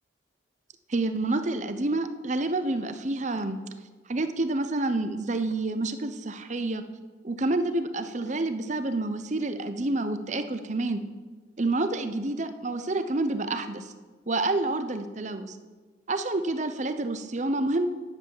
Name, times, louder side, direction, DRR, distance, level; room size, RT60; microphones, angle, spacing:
voice 1, 0.9-3.6 4.1-6.8 7.2-11.0 11.6-13.9 14.3-15.6 16.1-17.9, right 2 dB, 40° right, 9 dB, 0.8 m, -28 dB
10.5 x 8.2 x 7.2 m, 1.4 s
head